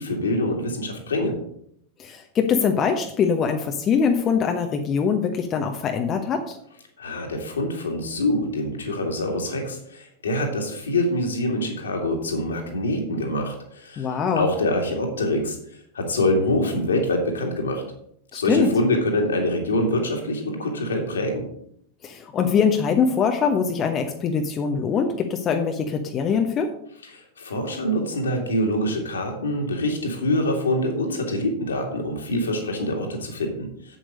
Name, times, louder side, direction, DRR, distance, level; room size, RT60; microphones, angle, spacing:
voice 1, 0.0-1.4 7.0-14.1 14.4-15.6 15.9-17.8 18.3-21.4 27.1-34.0, left 1 dB, 70° left, 2 dB, 2.2 m, -25 dB
voice 2, 2.0-6.6 14.0-14.5 18.3-18.7 22.0-26.7, left 6 dB, 30° left, 4 dB, 1.0 m, -23 dB
8.0 x 7.9 x 5.3 m, 0.69 s
figure-of-eight pair, 90°, 0 cm